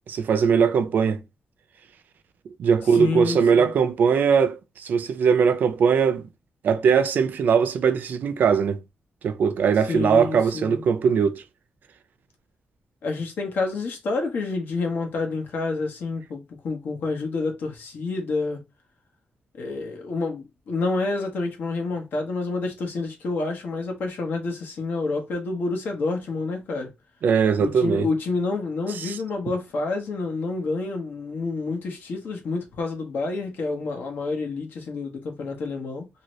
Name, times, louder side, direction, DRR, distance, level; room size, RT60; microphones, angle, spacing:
voice 1, 0.1-1.2 2.6-6.3 6.6-8.8 9.2-11.4 27.2-28.1 28.9-29.2, right 6 dB, 60° right, 0.5 m, -20 dB
voice 2, 2.9-3.7 9.9-10.8 13.0-18.6 19.6-26.9 27.6-36.1, left 3 dB, 70° left, 1.0 m, -28 dB
2.8 x 2.7 x 3.1 m
wide cardioid pair, 175°, 3 cm